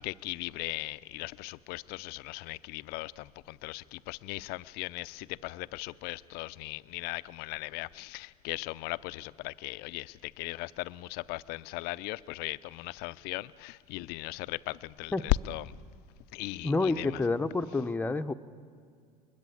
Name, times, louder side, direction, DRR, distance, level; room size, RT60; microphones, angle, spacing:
voice 1, 0.0-15.7 16.3-17.1, left 19 dB, 55° left, 17 dB, 0.5 m, -37 dB
voice 2, 16.6-18.3, left 3 dB, 10° left, 8 dB, 0.9 m, -29 dB
21.5 x 21.5 x 8.6 m, 2.2 s
hypercardioid pair, 75°, 20 cm